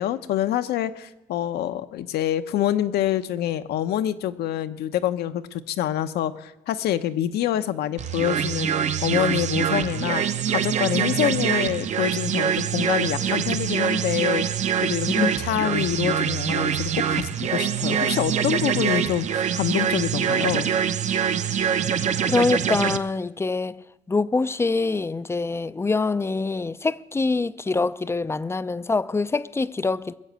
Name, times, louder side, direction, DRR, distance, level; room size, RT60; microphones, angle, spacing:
voice 1, 0.0-8.7 9.0-14.4 14.8-20.7, left 11 dB, 75° left, 0.9 m, -26 dB
sound 1, 8.0-23.0, right 8 dB, 45° right, 0.8 m, -24 dB
voice 2, 22.2-23.8 24.1-30.1, left 3 dB, 15° left, 0.4 m, -24 dB
21.0 x 7.3 x 8.1 m
cardioid pair, 110°, 17 cm